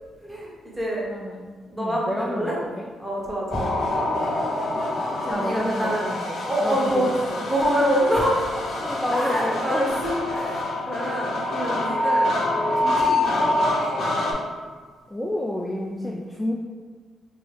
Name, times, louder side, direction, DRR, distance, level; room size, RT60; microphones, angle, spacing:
voice 1, 0.2-1.0 1.7-2.6 3.0-3.8 5.2-6.1 6.5-7.1 7.5-8.7 9.1-12.4 12.8-13.5, equal, 10° right, -4 dB, 0.9 m, -26 dB
voice 2, 1.1-2.9 3.8-3.9 5.3-7.5 8.8-9.9 15.1-16.5, left 1 dB, 5° left, -2 dB, 0.3 m, -30 dB
sound 1, 3.5-14.3, left 1 dB, 70° left, 0.5 m, -26 dB
2.7 x 2.6 x 3.3 m, 1.5 s
cardioid pair, 90°, 0 cm